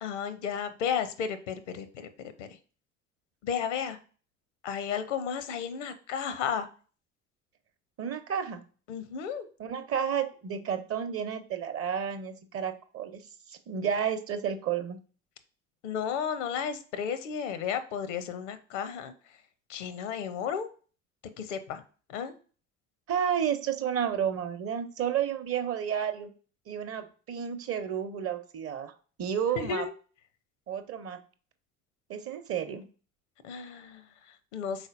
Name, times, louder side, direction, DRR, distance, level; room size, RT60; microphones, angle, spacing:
voice 1, 0.0-2.1 2.4-2.5 3.4-4.0 4.6-6.7 8.9-9.5 15.8-19.1 19.7-20.7 21.4-21.8 22.1-22.3 29.6-29.9 33.4-34.9, left 7 dB, 70° left, 11 dB, 0.7 m, -33 dB
voice 2, 8.0-8.6 9.6-13.2 13.5-15.0 23.1-26.3 26.7-28.9 29.2-29.8 30.7-31.2 32.1-32.8, right 8 dB, 40° right, 10 dB, 0.7 m, -31 dB
5.0 x 4.0 x 2.5 m, 0.38 s
figure-of-eight pair, 55°, 37 cm